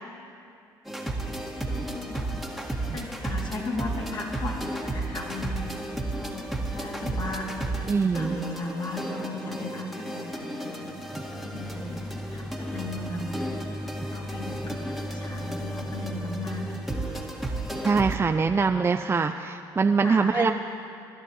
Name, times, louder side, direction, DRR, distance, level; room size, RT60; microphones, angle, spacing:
sound 1, 0.8-18.2, right 2 dB, ahead, 2.0 m, -34 dB
voice 1, 1.7-2.3 2.8-5.6 6.1-7.5 8.1-13.4 14.0-17.3 20.0-20.5, left 2 dB, 45° left, -2 dB, 3.1 m, -37 dB
voice 2, 7.9-8.4 17.8-20.5, right 4 dB, 25° right, 6 dB, 0.5 m, -23 dB
sound 2, 10.8-17.4, left 1 dB, 20° left, 1.0 m, -37 dB
20.5 x 11.5 x 3.1 m, 2.5 s
hypercardioid pair, 55°, 10 cm